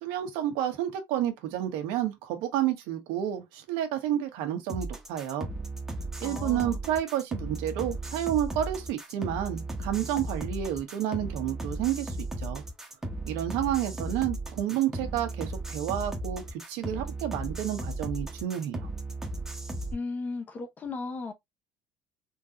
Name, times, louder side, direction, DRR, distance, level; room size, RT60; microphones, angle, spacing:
voice 1, 0.0-5.5 6.2-12.6 13.3-18.9, right 11 dB, 75° right, 1.2 m, -30 dB
sound 1, 4.7-19.9, right 2 dB, 5° right, 0.8 m, -36 dB
voice 2, 6.2-6.8 19.9-21.3, left 3 dB, 20° left, 0.6 m, -36 dB
3.8 x 2.8 x 2.4 m
cardioid pair, 175°, 8 cm